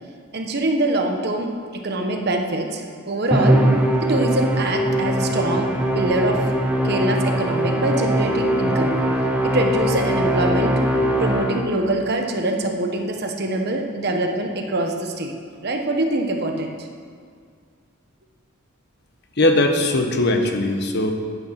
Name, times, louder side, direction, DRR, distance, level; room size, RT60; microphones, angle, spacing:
voice 1, 0.3-3.6 4.0-5.7 5.9-6.4 6.8-8.9 9.4-10.8 11.2-15.3 15.6-16.9, right 1 dB, 55° right, 3 dB, 1.3 m, -24 dB
Musical instrument, 3.3-11.9, equal, 5° right, 0.9 m, -21 dB
voice 2, 19.4-21.1, left 1 dB, 55° left, 5 dB, 1.1 m, -19 dB
9.4 x 8.7 x 5.9 m, 2.1 s
head